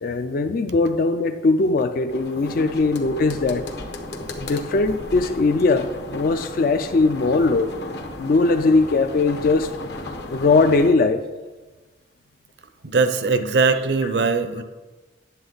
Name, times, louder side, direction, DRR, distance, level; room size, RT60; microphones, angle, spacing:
voice 1, 0.0-3.6 4.4-7.7 8.2-9.7 10.3-11.2, left 3 dB, 50° left, 6 dB, 0.4 m, -20 dB
sound 1, 2.1-10.9, left 2 dB, 65° left, 1.1 m, -34 dB
voice 2, 12.8-14.6, right 4 dB, 70° right, 10 dB, 0.7 m, -20 dB
9.9 x 7.6 x 3.9 m, 1.3 s
head